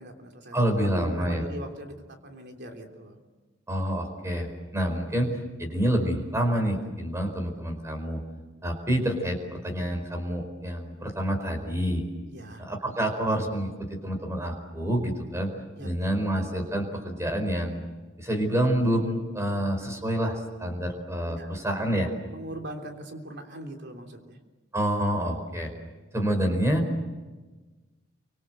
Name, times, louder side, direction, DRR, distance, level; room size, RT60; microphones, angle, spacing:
voice 1, 0.0-3.2 12.3-12.6 15.7-16.0 21.3-24.4, right 1 dB, 60° right, 3 dB, 3.4 m, -41 dB
voice 2, 0.5-1.4 3.7-8.2 8.6-12.0 12.6-15.5 15.8-17.8 18.2-22.1 24.7-25.7 26.1-26.8, equal, 15° right, 3 dB, 4.8 m, -27 dB
29.0 x 25.0 x 7.9 m, 1.3 s
head